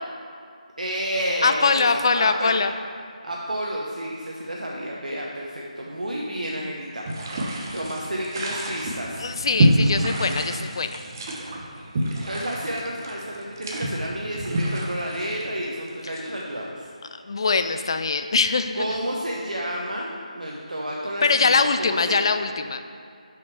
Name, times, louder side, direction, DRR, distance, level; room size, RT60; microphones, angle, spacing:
voice 1, 0.8-1.9 2.1-2.6 3.2-7.4 7.7-9.3 12.2-16.9 18.7-22.2, equal, 90° right, -3 dB, 0.8 m, -30 dB
voice 2, 1.4-2.7 9.2-11.0 17.3-18.8 21.2-22.8, left 4 dB, 40° left, 9 dB, 0.3 m, -22 dB
sound 1, 7.1-16.6, right 1 dB, 30° right, 0.6 m, -27 dB
5.7 x 5.2 x 4.5 m, 2.4 s
figure-of-eight pair, 165°, 4 cm